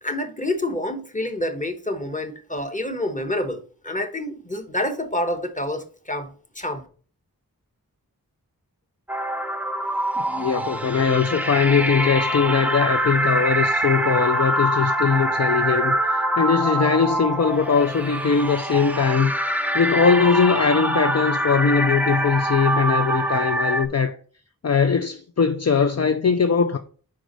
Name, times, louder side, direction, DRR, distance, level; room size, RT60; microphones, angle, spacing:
voice 1, 0.0-6.8, left 1 dB, 20° left, 1.1 m, -28 dB
sound 1, 9.1-23.9, right 1 dB, 5° right, 0.6 m, -24 dB
voice 2, 10.2-19.3 19.7-24.2 24.6-26.8, left 5 dB, 45° left, 0.5 m, -21 dB
5.1 x 4.8 x 5.2 m
wide cardioid pair, 55°, 35 cm